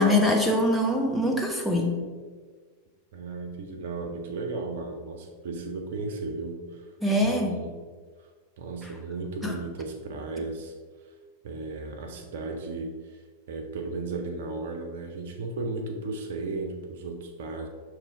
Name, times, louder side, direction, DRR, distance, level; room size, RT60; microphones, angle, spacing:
voice 1, 0.0-2.0 7.0-7.6 9.4-9.6, left 1 dB, ahead, -1 dB, 0.9 m, -23 dB
voice 2, 3.1-6.9 7.2-7.9 8.6-10.7 11.4-13.2 13.5-17.7, right 3 dB, 60° right, 3 dB, 0.8 m, -35 dB
6.3 x 3.3 x 4.8 m, 1.5 s
figure-of-eight pair, 90°, 0 cm